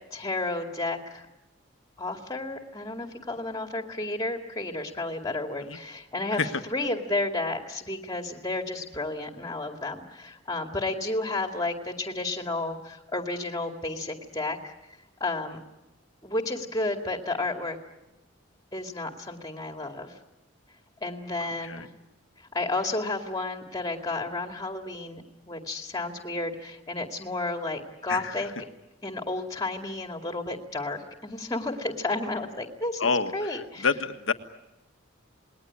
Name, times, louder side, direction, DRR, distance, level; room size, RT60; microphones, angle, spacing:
voice 1, 0.1-1.2 2.0-14.7 15.2-15.6 16.2-17.8 18.7-20.1 21.0-21.9 22.4-28.5 29.0-33.9, left 2 dB, 20° left, 4 dB, 2.3 m, -32 dB
voice 2, 21.4-21.9 28.1-28.4 33.0-34.3, left 5 dB, 85° left, 8 dB, 1.6 m, -28 dB
28.5 x 20.5 x 9.8 m, 0.99 s
head